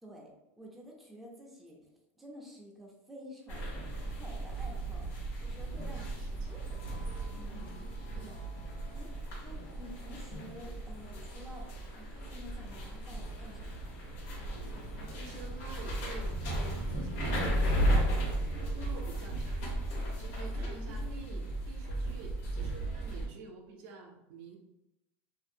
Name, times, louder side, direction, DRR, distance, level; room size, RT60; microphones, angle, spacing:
voice 1, 0.0-1.9 2.2-5.1 5.4-6.1 6.5-7.3 8.1-8.5 8.9-9.1 9.4-13.9 20.5-21.5, equal, ahead, -3 dB, 0.5 m, -51 dB
sound 1, 3.5-23.3, right 1 dB, 60° left, 1.0 m, -35 dB
voice 2, 5.8-6.7 8.1-8.3 15.0-18.2 18.7-19.7 20.1-24.6, right 4 dB, 55° right, 1 dB, 0.5 m, -49 dB
2.6 x 2.5 x 2.6 m, 0.92 s
supercardioid pair, 145°, 7 cm